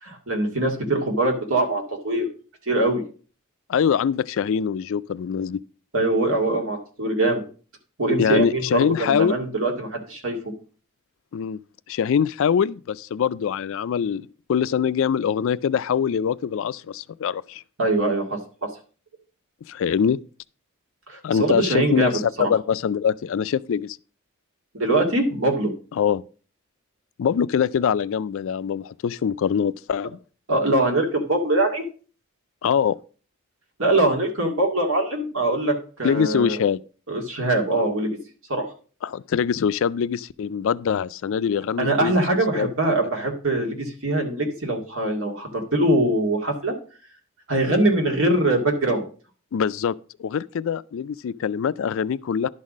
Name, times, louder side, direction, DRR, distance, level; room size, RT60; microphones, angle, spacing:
voice 1, 0.0-2.3 2.7-3.0 5.9-7.4 8.0-10.4 17.8-18.4 21.1-22.5 24.7-25.7 30.5-31.9 33.8-36.6 37.1-38.1 38.5-38.7 41.8-46.7 47.5-49.0, right 2 dB, 60° right, 2.2 m, -22 dB
voice 2, 3.7-5.6 8.2-9.4 11.3-11.6 11.9-17.6 19.7-20.2 21.2-24.0 26.0-26.2 27.2-30.2 32.6-33.0 36.0-36.8 39.0-42.2 42.6-42.7 49.5-49.9 50.2-52.5, left 7 dB, 60° left, 0.3 m, -23 dB
11.0 x 4.1 x 6.1 m
head